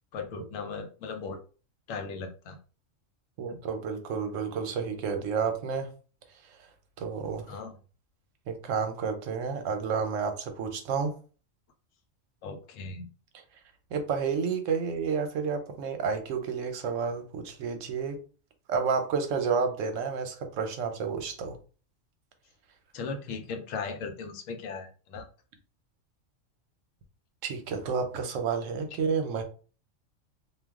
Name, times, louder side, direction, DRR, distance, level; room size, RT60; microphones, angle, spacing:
voice 1, 0.1-1.4 1.9-2.6 3.5-3.6 7.5-7.8 12.4-13.1 22.9-25.3, left 4 dB, 85° left, 6 dB, 1.0 m, -37 dB
voice 2, 3.4-5.9 7.0-7.5 8.5-11.1 13.9-18.2 18.7-21.6 27.4-29.4, right 5 dB, 80° right, 6 dB, 1.0 m, -30 dB
2.3 x 2.3 x 3.5 m, 0.37 s
omnidirectional pair, 1.3 m